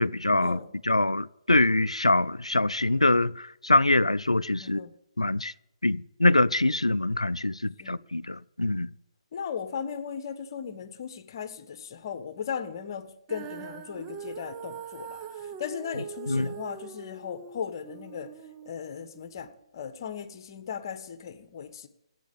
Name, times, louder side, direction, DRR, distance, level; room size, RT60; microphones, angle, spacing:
voice 1, 0.0-0.6 0.8-4.9 5.2-5.5 5.8-8.9 16.3-16.5, left 2 dB, 85° left, 0.4 m, -24 dB
voice 2, 4.6-4.9 7.8-8.0 9.3-18.3 18.6-21.9, left 7 dB, 40° left, 1.3 m, -37 dB
Female singing, 13.3-19.5, right 7 dB, 20° right, 1.0 m, -42 dB
14.5 x 8.5 x 8.6 m
figure-of-eight pair, 135°, 3 cm